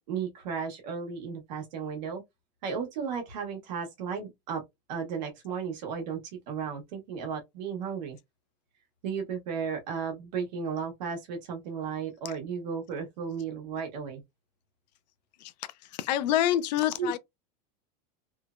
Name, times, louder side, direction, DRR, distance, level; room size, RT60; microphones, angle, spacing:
voice 1, 0.0-2.2 2.6-4.6 4.9-8.2 9.0-14.2 17.0-17.1, right 6 dB, 85° right, 1.1 m, -34 dB
voice 2, 15.8-17.2, left 12 dB, 80° left, 0.5 m, -27 dB
3.1 x 2.0 x 2.4 m
supercardioid pair, 155°, 21 cm